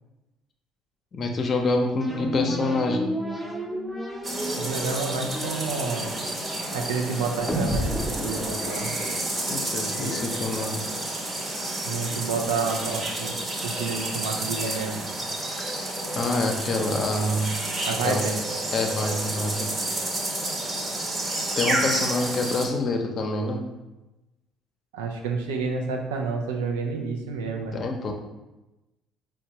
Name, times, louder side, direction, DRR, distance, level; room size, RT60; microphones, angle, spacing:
voice 1, 1.1-3.1 9.5-10.8 16.1-17.6 18.0-18.3 18.7-19.7 21.6-23.6 27.7-28.1, left 2 dB, 45° left, 3 dB, 0.5 m, -26 dB
sound 1, 2.0-9.5, equal, 5° right, 0.7 m, -32 dB
sound 2, 4.2-22.6, right 2 dB, 35° right, 0.9 m, -30 dB
voice 2, 4.5-6.1 6.7-8.0 8.2-9.0 9.9-10.2 11.8-15.0 17.9-18.4 24.9-27.8, right 4 dB, 85° right, 2 dB, 0.4 m, -29 dB
4.3 x 2.2 x 2.8 m, 1.0 s
hypercardioid pair, 60°, 0 cm